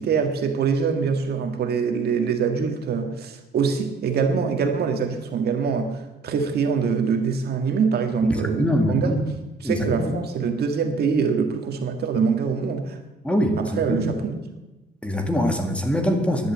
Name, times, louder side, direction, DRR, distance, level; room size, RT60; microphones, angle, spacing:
voice 1, 0.0-9.2 9.6-13.0 13.6-14.4, right 5 dB, 65° right, 1.9 m, -24 dB
voice 2, 8.2-9.2 9.6-10.1 13.2-14.0 15.0-16.5, equal, 5° left, 2.0 m, -23 dB
11.5 x 11.0 x 8.1 m
cardioid pair, 135°, 18 cm